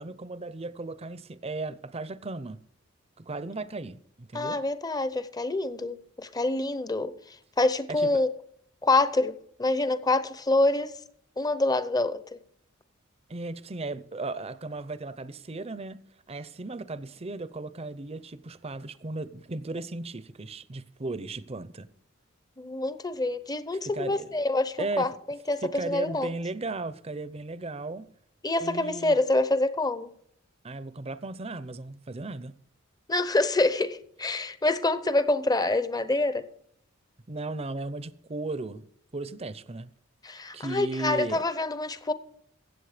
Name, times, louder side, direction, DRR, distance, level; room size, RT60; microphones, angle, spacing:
voice 1, 0.0-2.6 3.2-4.6 7.9-8.2 13.3-16.0 16.3-21.9 23.9-24.3 24.8-25.1 25.6-28.1 28.6-29.2 30.6-32.5 37.3-38.9 39.1-39.9 40.5-41.4, right 2 dB, 30° right, 0.7 m, -36 dB
voice 2, 4.3-7.1 7.6-8.3 8.8-10.9 11.4-12.4 22.6-26.3 28.4-30.1 33.1-36.4 40.2-42.1, left 2 dB, 20° left, 0.8 m, -26 dB
15.5 x 7.8 x 5.0 m
head